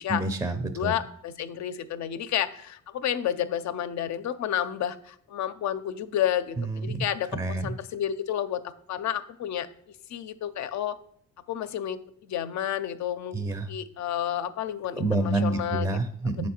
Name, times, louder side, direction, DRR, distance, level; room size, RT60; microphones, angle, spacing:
voice 1, 0.1-1.0 6.6-7.1 7.3-7.7 13.3-13.7 15.0-16.5, right 2 dB, 10° right, 9 dB, 0.5 m, -28 dB
voice 2, 0.7-8.6 8.9-11.0 11.5-13.4 13.7-16.0 16.3-16.5, left 10 dB, 65° left, 12 dB, 0.6 m, -31 dB
6.3 x 4.3 x 4.3 m, 0.65 s
cardioid pair, 90°, 30 cm